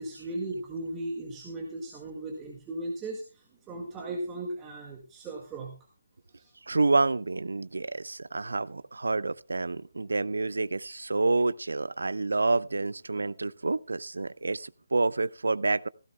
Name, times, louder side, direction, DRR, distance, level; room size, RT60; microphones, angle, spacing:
voice 1, 0.0-5.7 6.4-6.5, right 1 dB, 15° right, 1.8 m, -37 dB
voice 2, 6.7-15.9, right 3 dB, 70° right, 0.6 m, -28 dB
16.5 x 16.0 x 2.2 m
figure-of-eight pair, 150°, 0 cm